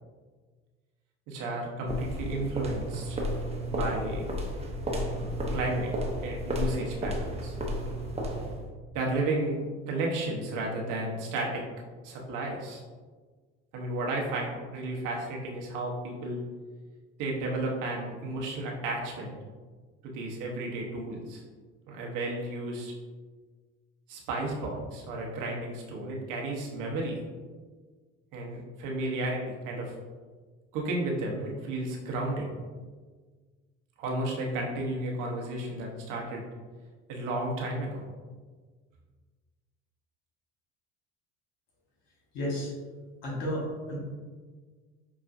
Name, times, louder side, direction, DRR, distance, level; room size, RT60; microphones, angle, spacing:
voice 1, 1.3-3.2 3.7-4.2 5.5-5.9 6.2-7.6 8.9-11.6 12.0-12.8 13.7-16.4 17.2-19.3 20.0-21.4 21.9-22.9 24.1-27.2 28.3-29.9 30.7-32.5 34.0-36.4 37.1-38.0, right 2 dB, 60° right, -1 dB, 1.0 m, -33 dB
sound 1, 1.9-8.7, equal, 20° right, 0.7 m, -32 dB
voice 2, 42.3-42.7 43.2-44.0, equal, 75° left, -3 dB, 1.4 m, -32 dB
5.9 x 2.3 x 2.5 m, 1.5 s
hypercardioid pair, 70°, 35 cm